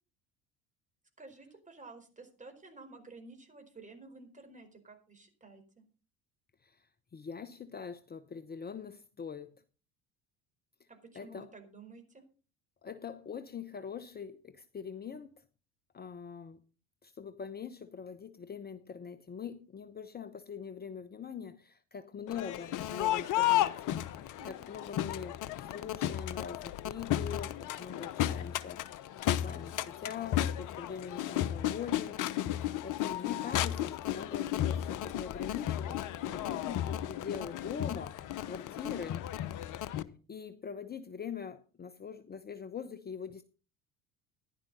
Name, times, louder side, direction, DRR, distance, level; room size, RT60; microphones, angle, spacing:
voice 1, 1.2-5.8 10.9-12.2 24.4-24.7 36.4-36.6, right 3 dB, 20° right, 4.7 m, -52 dB
voice 2, 6.6-9.6 10.8-10.9 11.1-11.5 12.8-15.4 15.9-16.6 17.0-39.2 40.3-43.4, left 7 dB, 25° left, 0.9 m, -43 dB
Crowd, 22.3-40.0, left 12 dB, 50° left, 1.0 m, -34 dB
15.0 x 11.0 x 4.1 m
hypercardioid pair, 65°, 39 cm